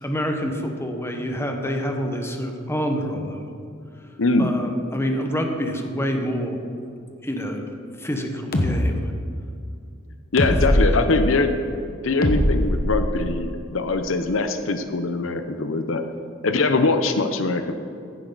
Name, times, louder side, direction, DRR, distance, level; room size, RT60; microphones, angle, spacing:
voice 1, 0.0-3.5 4.4-6.6 7.2-7.7 8.0-9.1 10.4-10.8, equal, 15° left, 3 dB, 1.2 m, -27 dB
voice 2, 4.2-4.5 10.3-11.5 12.0-16.0 16.4-17.7, left 3 dB, 85° left, 8 dB, 0.8 m, -22 dB
sound 1, 8.5-8.8 10.4-10.9 12.2-13.4, left 1 dB, 50° left, 1.2 m, -20 dB
15.0 x 10.5 x 4.0 m, 2.4 s
head